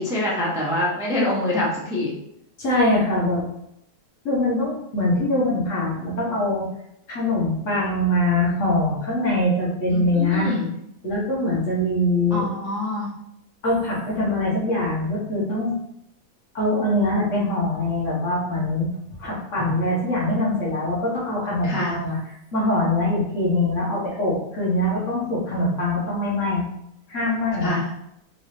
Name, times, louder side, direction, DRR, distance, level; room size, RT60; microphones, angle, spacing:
voice 1, 0.0-2.1 9.9-10.7 12.3-13.1 19.6-19.7 21.6-21.9 27.6-27.8, left 1 dB, 5° right, -5 dB, 0.3 m, -25 dB
voice 2, 2.6-3.5 4.2-6.7 7.1-10.5 11.0-12.4 13.6-15.8 16.5-18.9 19.2-22.2 22.5-26.7 27.1-27.8, left 1 dB, 50° left, -5 dB, 1.4 m, -23 dB
3.8 x 2.6 x 3.2 m, 0.77 s
omnidirectional pair, 1.8 m